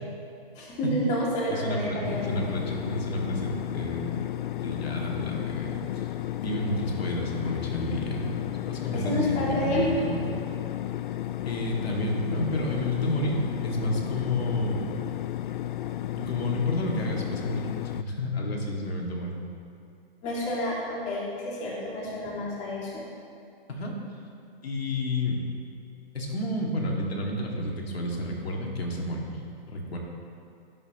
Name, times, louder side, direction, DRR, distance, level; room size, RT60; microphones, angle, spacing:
voice 1, 0.6-2.3 8.9-9.9 11.2-11.3 20.2-23.0, left 1 dB, 25° left, -5 dB, 2.4 m, -29 dB
voice 2, 1.5-4.0 4.6-6.1 6.4-10.2 11.4-13.4 13.6-14.8 16.1-19.4 23.7-23.9 24.6-25.4 26.1-29.4 29.7-30.0, left 1 dB, 85° left, -1 dB, 2.3 m, -30 dB
sound 1, 2.0-18.0, left 13 dB, 55° left, 0.4 m, -33 dB
17.0 x 7.9 x 3.0 m, 2.5 s
hypercardioid pair, 145°, 30 cm